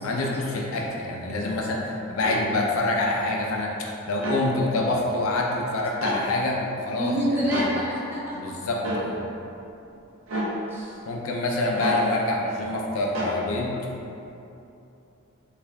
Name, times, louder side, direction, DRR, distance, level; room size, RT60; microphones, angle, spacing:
voice 1, 0.0-7.1 8.3-9.2 11.1-13.8, left 2 dB, 80° left, -1 dB, 0.4 m, -26 dB
sound 1, 2.2-2.4 4.2-4.4 6.0-6.2 7.5-7.7 8.8-9.1 10.3-10.5 11.8-12.0 13.2-13.4, right 1 dB, 65° right, 0.7 m, -29 dB
voice 2, 7.0-8.5 10.7-11.0 11.5-11.8, equal, 10° right, -6 dB, 0.5 m, -28 dB
3.4 x 2.4 x 3.2 m, 2.8 s
head